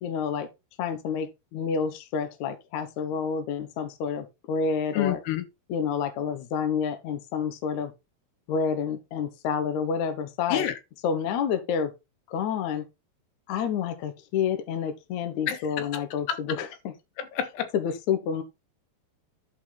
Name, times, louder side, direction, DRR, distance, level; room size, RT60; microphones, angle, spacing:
voice 1, 0.0-0.5 0.8-5.2 5.7-7.9 8.5-10.7 11.0-11.9 12.3-12.8 13.5-16.9 17.7-18.4, left 6 dB, 90° left, 1.6 m, -29 dB
voice 2, 4.9-5.4 10.5-10.7 15.5-16.0 16.3-16.6 17.2-17.7, left 10 dB, 75° left, 3.0 m, -29 dB
11.0 x 5.0 x 4.0 m
omnidirectional pair, 5.4 m